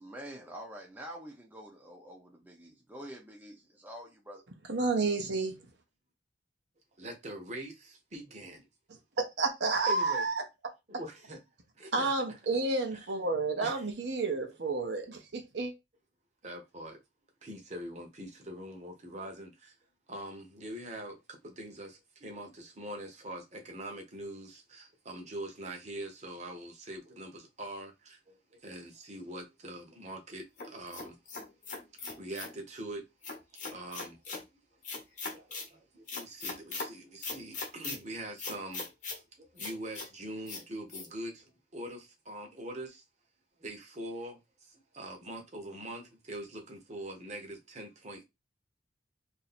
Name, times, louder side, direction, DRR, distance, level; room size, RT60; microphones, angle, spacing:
voice 1, 0.0-4.4, right 1 dB, 10° right, 0.6 m, -47 dB
voice 2, 4.7-5.6 9.4-10.4 11.9-15.7, right 3 dB, 60° right, 0.8 m, -30 dB
voice 3, 7.0-8.7 9.9-10.2 10.9-11.4 11.8-12.1 12.9-13.1 13.6-13.8 16.4-17.0 17.4-19.7 20.1-31.2 32.2-33.0 33.7-34.2 34.5-34.6 35.3-38.9 39.4-41.4 41.7-43.0 43.6-48.2, right 1 dB, 35° right, 1.0 m, -43 dB
sound 1, 30.6-32.6 33.2-34.4 34.8-35.7 36.1-36.9 37.2-38.0 38.4-39.2 39.6-40.1 40.5-40.6 40.9-41.1, left 4 dB, 40° left, 1.0 m, -39 dB
3.0 x 2.7 x 4.2 m
head